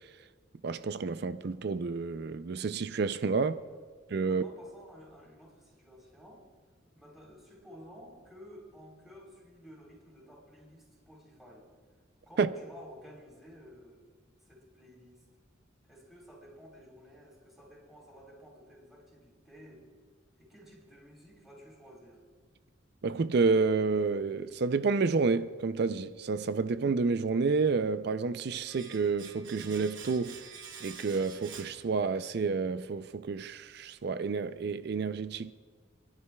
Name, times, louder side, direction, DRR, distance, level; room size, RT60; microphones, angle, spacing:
voice 1, 0.6-3.6 4.1-4.4 12.4-12.5 23.0-30.4 30.8-35.5, right 4 dB, 55° right, 0.4 m, -29 dB
voice 2, 3.4-3.8 4.2-6.5 6.9-11.7 12.3-14.0 14.4-15.3 15.8-19.9 20.4-22.2, equal, ahead, 3.7 m, -53 dB
Domestic sounds home sounds, 28.6-32.5 32.7-32.9, right 7 dB, 75° right, 1.0 m, -48 dB
29.0 x 11.0 x 2.3 m
head